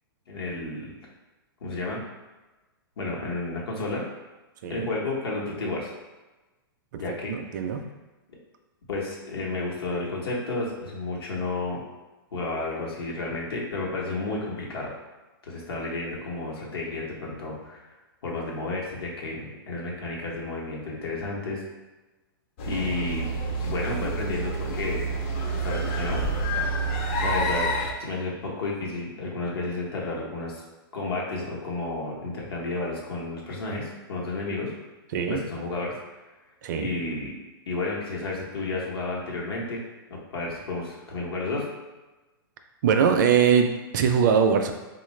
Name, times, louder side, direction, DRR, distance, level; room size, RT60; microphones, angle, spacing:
voice 1, 0.3-0.9 1.6-2.0 3.0-4.0 4.7-5.9 7.0-7.3 8.9-11.8 12.3-14.9 15.4-17.8 18.2-21.6 22.6-23.3 23.6-25.1 25.5-26.2 27.2-27.7 28.0-30.6 30.9-34.7 35.3-35.9 36.7-37.4 37.7-39.8 40.1-41.7, left 2 dB, 80° left, -3 dB, 1.1 m, -31 dB
voice 2, 7.3-7.8 35.1-35.4 36.6-36.9 42.8-44.7, right 7 dB, 50° right, 6 dB, 0.4 m, -22 dB
sound 1, 22.6-27.9, right 2 dB, 35° left, 0.4 m, -28 dB
3.7 x 2.4 x 3.1 m, 1.1 s
hypercardioid pair, 155°, 13 cm